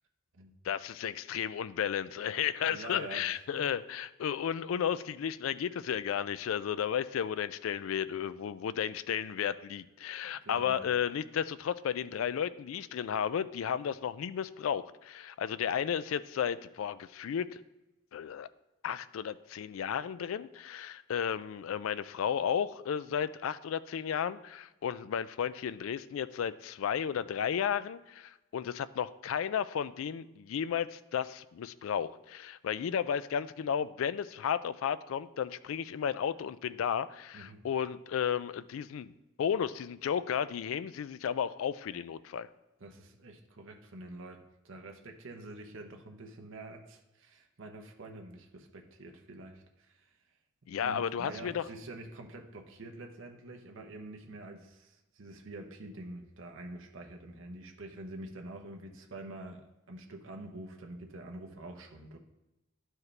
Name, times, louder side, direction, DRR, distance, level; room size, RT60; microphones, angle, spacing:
voice 1, 0.6-17.6 18.1-18.5 18.8-39.1 39.4-42.5 50.7-51.6, left 8 dB, 80° left, 15 dB, 0.3 m, -33 dB
voice 2, 2.7-3.7 10.2-10.8 37.3-37.7 42.8-50.2 50.8-62.2, right 2 dB, 70° right, 3 dB, 0.8 m, -47 dB
12.0 x 4.7 x 3.2 m, 1.0 s
head